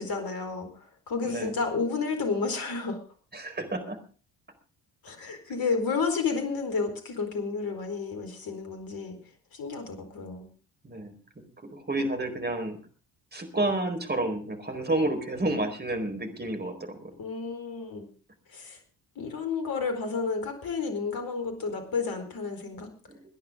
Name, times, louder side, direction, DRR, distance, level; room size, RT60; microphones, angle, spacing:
voice 1, 0.0-3.0 5.0-9.2 9.5-10.5 17.2-18.1 18.5-18.8 19.2-22.9, left 4 dB, 55° left, 6 dB, 4.4 m, -31 dB
voice 2, 1.2-1.6 3.3-4.0 10.8-11.2 11.6-12.8 13.3-17.0 23.1-23.2, right 2 dB, 20° right, 6 dB, 4.5 m, -30 dB
23.5 x 10.5 x 3.7 m, 0.37 s
hypercardioid pair, 45°, 43 cm